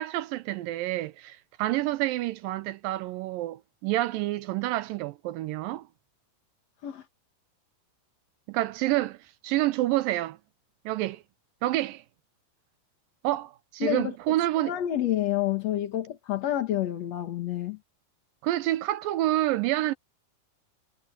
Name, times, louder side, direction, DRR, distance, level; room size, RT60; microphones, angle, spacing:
voice 1, 0.0-5.9 8.5-9.2 9.4-10.4 10.9-11.2 11.6-12.0 13.2-14.8 18.4-19.9, right 16 dB, 80° right, 2.1 m, -28 dB
voice 2, 13.8-14.1 14.6-17.8, left 12 dB, 55° left, 2.2 m, -28 dB
omnidirectional pair, 4.5 m